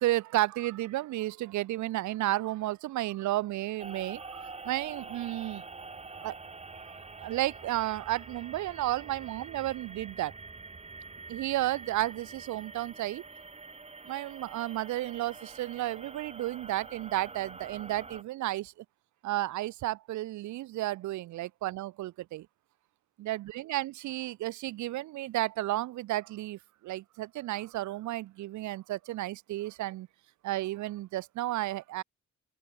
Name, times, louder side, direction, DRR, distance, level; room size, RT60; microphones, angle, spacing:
voice 1, 0.0-5.6 6.2-6.4 6.9-10.3 11.3-13.2 14.1-18.7 19.2-22.5 23.2-30.1 30.4-32.0, right 16 dB, 70° right, 0.6 m, -32 dB
sound 1, 3.8-18.2, right 3 dB, 20° right, 1.8 m, -46 dB
open air
cardioid pair, 90°, 30 cm